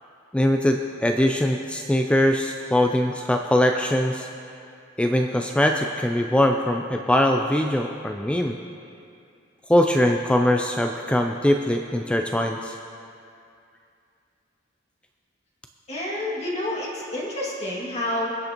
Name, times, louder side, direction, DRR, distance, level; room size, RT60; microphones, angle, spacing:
voice 1, 0.3-4.3 5.0-8.6 9.7-12.7, left 1 dB, 5° left, 3 dB, 0.3 m, -22 dB
voice 2, 15.9-18.4, left 1 dB, 35° left, -4 dB, 2.2 m, -29 dB
24.0 x 8.3 x 3.0 m, 2.5 s
head